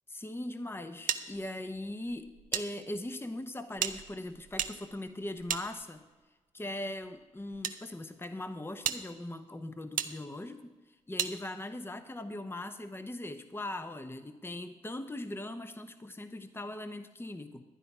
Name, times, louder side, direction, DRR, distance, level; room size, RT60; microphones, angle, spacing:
voice 1, 0.1-6.0 6.5-17.6, left 1 dB, 15° left, 9 dB, 0.9 m, -40 dB
sound 1, 1.1-2.7 2.9-3.0 3.7-6.2 7.0-7.8 8.3-8.4 8.8-9.0 10.0-10.1 11.2-11.3, right 9 dB, 85° right, 0.6 m, -35 dB
12.5 x 9.4 x 4.9 m, 1.2 s
cardioid pair, 55°, 14 cm